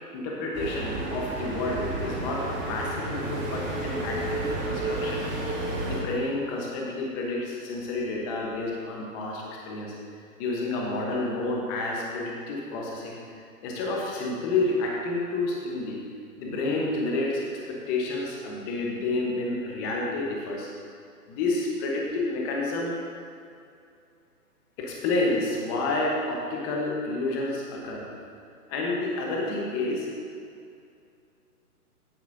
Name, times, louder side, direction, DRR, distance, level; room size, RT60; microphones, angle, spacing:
voice 1, 0.1-5.2 5.9-9.9 10.4-13.2 13.6-16.0 16.4-20.7 21.3-23.0 24.8-28.2 28.7-30.1, left 2 dB, 15° left, -2 dB, 1.0 m, -29 dB
sound 1, 0.5-6.0, right 2 dB, 20° right, 1.5 m, -31 dB
16.0 x 8.1 x 2.7 m, 2.5 s
hypercardioid pair, 150°, 46 cm